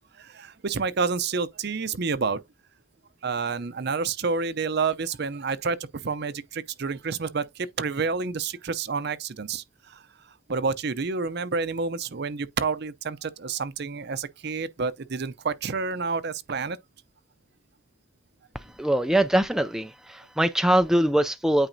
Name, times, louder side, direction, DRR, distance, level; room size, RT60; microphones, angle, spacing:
voice 1, 0.2-2.4 3.2-5.8 6.0-10.0 10.5-16.8, right 4 dB, 55° right, 0.6 m, -29 dB
voice 2, 18.8-21.7, right 1 dB, 5° right, 0.3 m, -22 dB
9.0 x 4.7 x 2.7 m
head